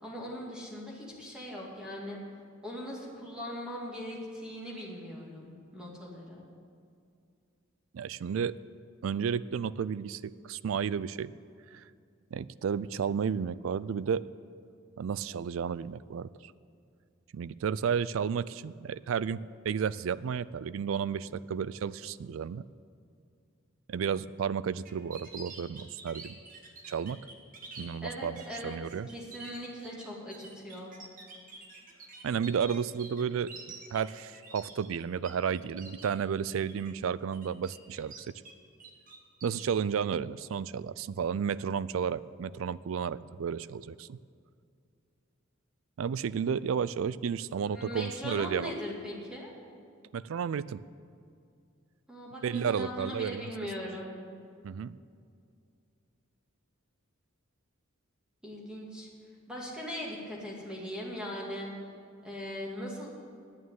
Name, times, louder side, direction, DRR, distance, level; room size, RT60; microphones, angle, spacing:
voice 1, 0.0-2.2 2.6-6.5 28.0-28.8 29.1-30.9 47.7-49.5 52.1-54.1 58.4-59.1 59.5-61.7 62.2-63.1, equal, 5° right, -3 dB, 2.1 m, -40 dB
voice 2, 7.9-8.6 9.0-11.3 11.7-11.8 12.3-14.2 15.0-16.5 17.3-19.4 19.6-22.6 23.9-26.3 26.9-27.2 27.8-29.1 32.2-33.5 33.9-38.3 39.4-44.2 46.0-48.7 50.1-50.8 52.4-53.5 54.6-55.0, right 7 dB, 70° right, 18 dB, 0.3 m, -32 dB
sound 1, 24.8-27.9 28.4-28.6 28.9-35.3 35.5-36.1 36.5-36.9 37.3-38.5 38.8-39.8, right 4 dB, 40° right, 1.5 m, -48 dB
9.3 x 8.6 x 9.5 m, 2.3 s
head